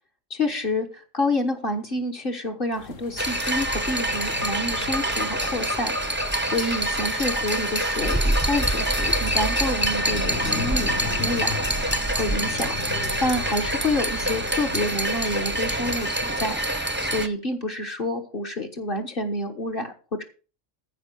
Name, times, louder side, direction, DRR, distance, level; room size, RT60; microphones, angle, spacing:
voice 1, 0.3-10.9 11.2-11.6 11.8-19.9 20.2-20.3, left 2 dB, 45° left, 2 dB, 1.6 m, -28 dB
sound 1, 2.7-16.0, left 5 dB, 70° left, 1.9 m, -38 dB
sound 2, 3.2-17.3, right 1 dB, 10° right, 0.8 m, -25 dB
14.5 x 5.1 x 7.0 m, 0.35 s
omnidirectional pair, 1.4 m